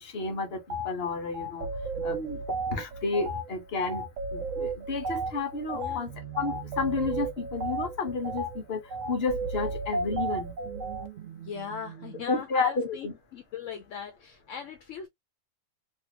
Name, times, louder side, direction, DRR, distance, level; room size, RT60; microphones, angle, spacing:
voice 1, 0.0-1.7 2.0-2.4 2.7-4.0 4.3-6.1 6.4-8.8 9.1-10.5 12.3-13.1, left 4 dB, 50° left, 1.3 m, -31 dB
sound 1, 0.7-0.9 1.3-11.1, right 2 dB, 75° right, 1.1 m, -34 dB
sound 2, 2.0-2.6 6.1-9.2 9.6-12.3, right 9 dB, 60° right, 0.8 m, -46 dB
voice 2, 5.7-6.0 11.4-15.1, left 7 dB, 75° left, 1.0 m, -39 dB
3.4 x 2.5 x 2.9 m
omnidirectional pair, 1.3 m